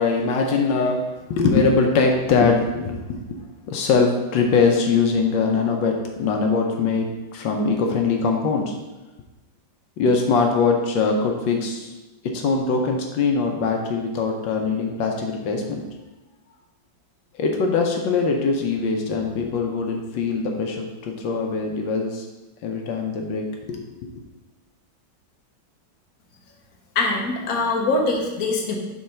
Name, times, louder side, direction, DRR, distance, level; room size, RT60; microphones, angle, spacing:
voice 1, 0.0-8.8 10.0-11.9 12.2-15.9 17.3-22.3 22.6-23.9, left 4 dB, 80° left, 2 dB, 1.4 m, -22 dB
voice 2, 26.9-28.8, left 3 dB, 55° left, 0 dB, 1.3 m, -23 dB
5.5 x 3.9 x 5.6 m, 1.1 s
omnidirectional pair, 2.0 m